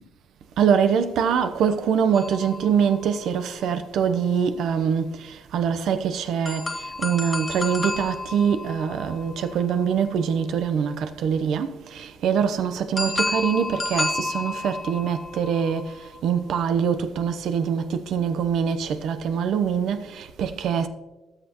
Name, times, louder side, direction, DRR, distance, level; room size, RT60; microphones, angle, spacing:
voice 1, 0.6-5.1 5.5-6.6 7.0-15.8 16.2-20.9, right 7 dB, 75° right, 0.8 m, -24 dB
sound 1, 2.1-3.9 6.5-10.4 13.0-16.4, left 2 dB, 20° left, 1.4 m, -32 dB
18.5 x 6.6 x 3.0 m
cardioid pair, 90°, 0 cm